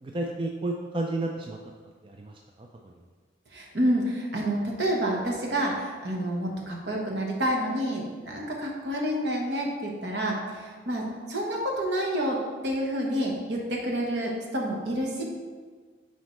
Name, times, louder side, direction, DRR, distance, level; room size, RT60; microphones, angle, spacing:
voice 1, 0.0-1.6 2.0-2.9, right 2 dB, 25° right, 1 dB, 0.4 m, -32 dB
voice 2, 3.5-12.4 12.6-15.2, equal, 60° right, -1 dB, 1.2 m, -28 dB
10.0 x 4.0 x 3.2 m, 1.5 s
head